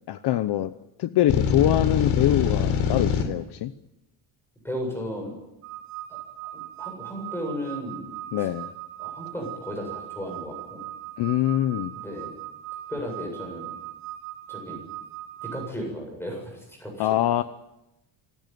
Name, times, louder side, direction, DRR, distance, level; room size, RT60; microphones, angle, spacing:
voice 1, 0.1-0.7 1.0-3.7 8.3-8.7 11.2-11.9 17.0-17.4, left 13 dB, 55° left, 12 dB, 0.9 m, -24 dB
sound 1, 1.3-3.2, left 6 dB, 85° left, 3.8 m, -23 dB
voice 2, 4.6-5.4 6.1-6.2 6.5-8.5 9.0-10.8 12.0-12.4 12.9-13.7 14.5-14.8 15.4-17.1, equal, 5° left, 2 dB, 7.7 m, -35 dB
sound 2, 5.6-15.7, right 14 dB, 90° right, 4.3 m, -39 dB
25.5 x 16.0 x 9.4 m, 0.95 s
cardioid pair, 180°, 48 cm